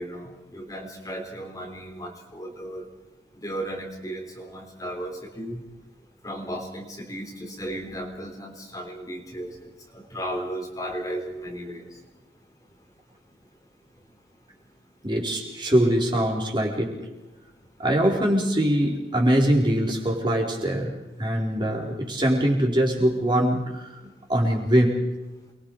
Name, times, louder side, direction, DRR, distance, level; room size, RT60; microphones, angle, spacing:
voice 1, 0.0-2.8 3.3-5.6 6.2-11.9, right 1 dB, 20° left, 1 dB, 3.9 m, -35 dB
voice 2, 15.0-16.9 17.8-20.9 21.2-23.9 24.3-25.0, right 1 dB, 25° right, 0 dB, 4.6 m, -22 dB
29.5 x 22.5 x 5.0 m, 1.1 s
head